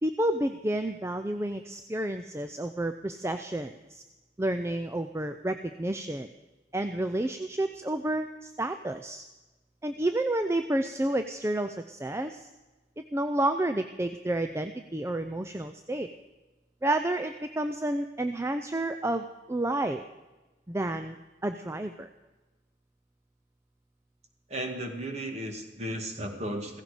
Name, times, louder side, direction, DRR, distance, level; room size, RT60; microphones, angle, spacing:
voice 1, 0.0-4.0 4.4-6.3 6.7-9.2 9.8-12.5 13.1-16.1 16.8-20.0 20.7-21.2 21.4-22.1, right 1 dB, 15° right, 8 dB, 0.4 m, -30 dB
voice 2, 24.5-26.8, right 1 dB, 35° right, 4 dB, 1.9 m, -35 dB
15.5 x 15.5 x 5.0 m, 1.2 s
head